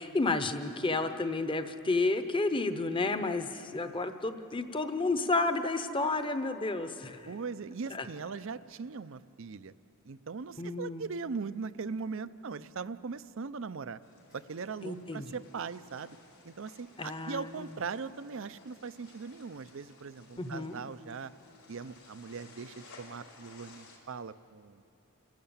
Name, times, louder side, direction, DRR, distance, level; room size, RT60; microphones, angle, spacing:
voice 1, 0.0-7.3 7.9-8.1 10.6-11.1 14.8-15.3 17.0-17.7 20.4-20.8, left 3 dB, 25° left, 9 dB, 0.9 m, -31 dB
voice 2, 7.3-9.7 10.1-14.0 14.3-16.2 16.4-21.3 21.7-24.8, right 5 dB, 60° right, 15 dB, 0.5 m, -40 dB
sound 1, 14.0-24.0, left 3 dB, 75° left, 4.8 m, -57 dB
29.0 x 12.5 x 8.8 m, 2.8 s
head